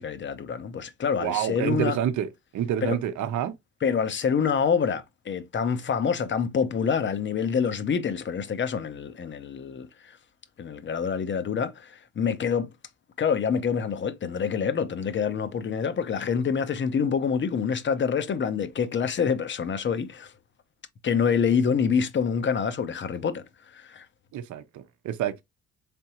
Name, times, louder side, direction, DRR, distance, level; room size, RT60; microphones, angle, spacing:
voice 1, 0.0-2.0 2.8-3.0 3.8-10.2 10.6-12.7 13.2-20.3 21.0-24.1, left 6 dB, 40° left, 0.7 m, -26 dB
voice 2, 1.2-2.3 2.5-3.5 24.3-25.4, right 10 dB, 75° right, 0.7 m, -28 dB
3.6 x 3.4 x 2.9 m
cardioid pair, 90°, 30 cm